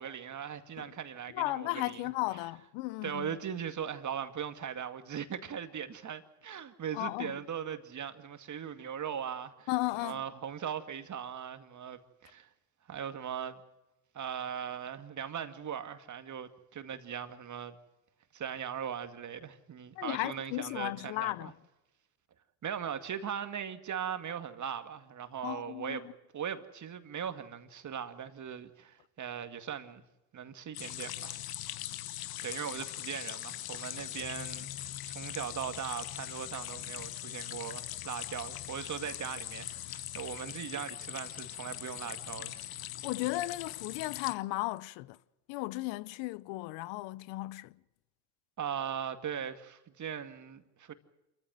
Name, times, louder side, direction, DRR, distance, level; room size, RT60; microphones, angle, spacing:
voice 1, 0.0-2.0 3.0-9.7 10.0-12.5 12.9-13.6 14.1-17.8 18.3-21.5 22.6-26.1 26.3-30.0 30.3-31.4 32.4-42.6 48.6-50.9, right 8 dB, 40° right, 2.2 m, -39 dB
voice 2, 1.3-3.3 6.9-7.4 9.7-10.2 19.9-21.5 25.4-26.0 43.0-45.2 45.5-47.8, left 20 dB, 65° left, 0.9 m, -35 dB
sound 1, 30.7-44.3, left 13 dB, 50° left, 1.3 m, -41 dB
28.0 x 14.5 x 7.6 m
hypercardioid pair, 80°, 46 cm